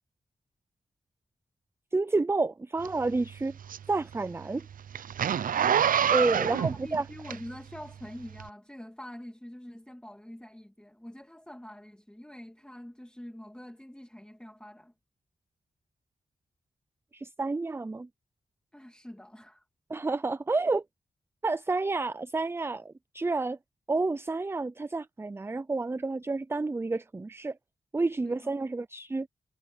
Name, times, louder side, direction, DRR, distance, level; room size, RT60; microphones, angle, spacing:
voice 1, 1.9-3.6 3.9-4.7 6.1-7.0 17.1-18.1 19.9-20.8 21.4-23.6 23.9-27.6 27.9-29.3, right 3 dB, 15° right, 0.4 m, -29 dB
Zipper (clothing), 2.8-7.8 8.3-8.5, right 8 dB, 70° right, 0.5 m, -27 dB
voice 2, 6.3-14.9 18.7-19.6 28.2-28.5, left 1 dB, 5° left, 2.0 m, -45 dB
cardioid pair, 80°, 15 cm